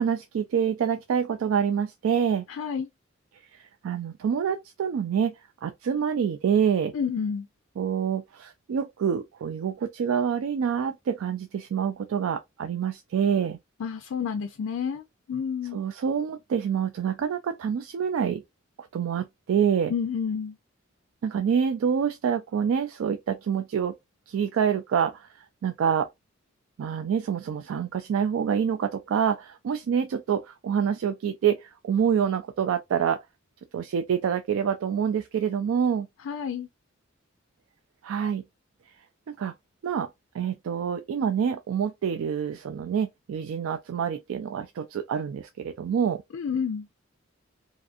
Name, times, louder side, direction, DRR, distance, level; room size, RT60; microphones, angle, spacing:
voice 1, 0.0-2.4 3.5-5.3 5.6-6.9 7.8-13.6 15.7-18.4 18.8-19.9 21.2-23.9 24.3-26.1 26.8-33.2 33.7-36.1 38.0-38.4 39.3-39.5 39.8-40.1 40.3-46.2, right 7 dB, 85° right, 0.3 m, -27 dB
voice 2, 2.5-2.9 6.9-7.5 13.8-15.8 19.9-20.6 36.2-36.7 46.3-46.9, left 6 dB, 85° left, 0.4 m, -30 dB
2.5 x 2.4 x 2.4 m
head